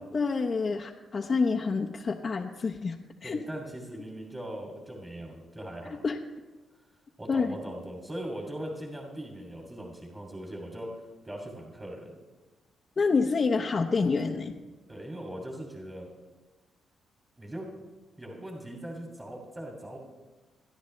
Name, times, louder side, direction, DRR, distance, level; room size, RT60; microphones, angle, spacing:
voice 1, 0.0-3.4 5.9-6.2 7.3-7.6 13.0-14.5, left 4 dB, 45° left, 0 dB, 0.9 m, -28 dB
voice 2, 3.2-6.0 7.2-12.1 14.9-16.1 17.4-17.7 18.2-20.0, right 1 dB, 20° right, 0 dB, 2.7 m, -40 dB
26.5 x 10.5 x 3.3 m, 1.2 s
cardioid pair, 70°, 0 cm